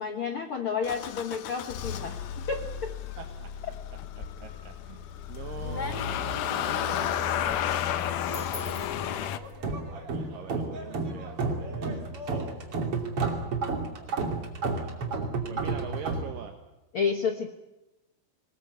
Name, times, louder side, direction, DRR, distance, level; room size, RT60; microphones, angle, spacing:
voice 1, 0.0-3.0 16.9-17.5, left 6 dB, 85° left, 6 dB, 1.2 m, -31 dB
Motor vehicle (road) / Engine starting, 0.8-9.4, left 10 dB, 70° left, 2.3 m, -32 dB
voice 2, 3.1-3.5 4.2-8.0 8.3-9.5 9.8-12.8 14.0-16.6, right 7 dB, 70° right, 4 dB, 2.9 m, -44 dB
sound 1, 4.1-4.7 5.1-9.7, left 3 dB, 30° left, 1.8 m, -42 dB
sound 2, 6.4-7.7 8.0-8.7 9.1-16.2, right 3 dB, 40° right, 3.3 m, -32 dB
24.0 x 20.0 x 8.3 m, 0.99 s
omnidirectional pair, 4.4 m